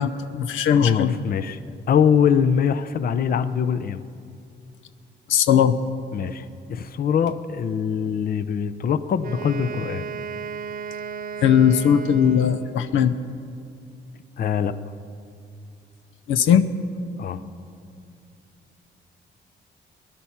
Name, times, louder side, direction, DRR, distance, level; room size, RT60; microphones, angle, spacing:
voice 1, 0.0-1.1 5.3-5.8 11.4-13.1 16.3-16.6, left 8 dB, 85° left, 11 dB, 0.6 m, -18 dB
voice 2, 0.7-1.6 1.9-4.0 6.1-6.4 6.7-10.0 14.4-14.7 17.2-17.4, left 7 dB, 50° left, 13 dB, 0.6 m, -23 dB
Wind instrument woodwind instrument, 9.2-12.9, right 6 dB, 45° right, 0.8 m, -34 dB
18.0 x 10.5 x 5.7 m, 2.4 s
cardioid pair, 90°, 20 cm